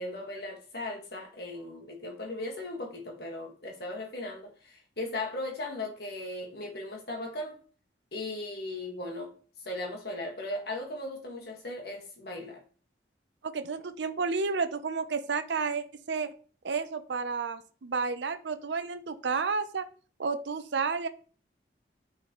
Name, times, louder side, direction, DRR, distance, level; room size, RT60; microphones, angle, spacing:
voice 1, 0.0-7.6 8.1-9.3 9.6-12.6, left 2 dB, 60° left, 1.7 m, -37 dB
voice 2, 13.4-16.3 16.6-19.9 20.2-21.1, right 4 dB, 80° right, 0.6 m, -31 dB
9.0 x 4.1 x 3.0 m
head